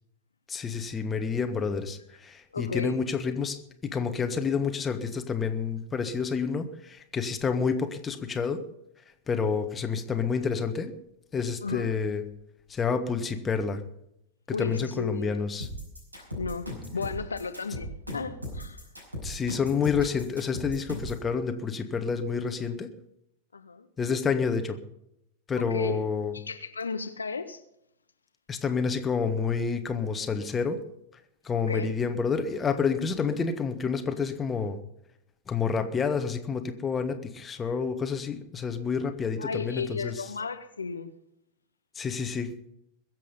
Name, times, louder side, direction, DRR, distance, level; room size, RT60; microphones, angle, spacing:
voice 1, 0.5-3.6 3.8-8.6 9.3-10.9 11.3-12.2 12.7-13.8 14.5-15.7 19.2-22.9 24.0-24.8 25.5-26.3 28.5-30.8 31.4-34.8 35.5-40.2 41.9-42.5, left 5 dB, 20° left, 1.4 m, -29 dB
voice 2, 2.5-3.0 11.6-11.9 14.5-15.4 16.2-18.8 23.5-23.9 25.6-26.0 26.3-27.6 31.7-31.9 37.6-37.8 39.4-41.1, left 4 dB, 75° left, 0.8 m, -34 dB
sound 1, 15.6-21.2, equal, 80° right, 5.6 m, -37 dB
22.0 x 7.7 x 5.4 m
figure-of-eight pair, 90°, 0 cm